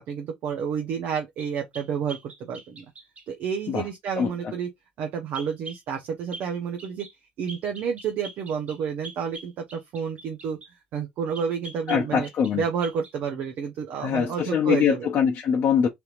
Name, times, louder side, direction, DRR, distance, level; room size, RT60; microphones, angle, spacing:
voice 1, 0.0-2.8 3.3-4.7 5.0-7.1 7.4-10.6 10.9-12.3 12.5-15.1, right 6 dB, 60° right, 0.7 m, -30 dB
sound 1, 1.4-3.3 5.3-5.8 6.3-6.5 6.8-7.2 7.5-10.7 11.3-12.6 12.8-13.1, right 2 dB, 35° right, 1.3 m, -43 dB
voice 2, 4.2-4.5 11.9-12.6 14.0-15.9, left 7 dB, 50° left, 0.7 m, -23 dB
3.4 x 2.8 x 2.4 m
hypercardioid pair, 60°, 4 cm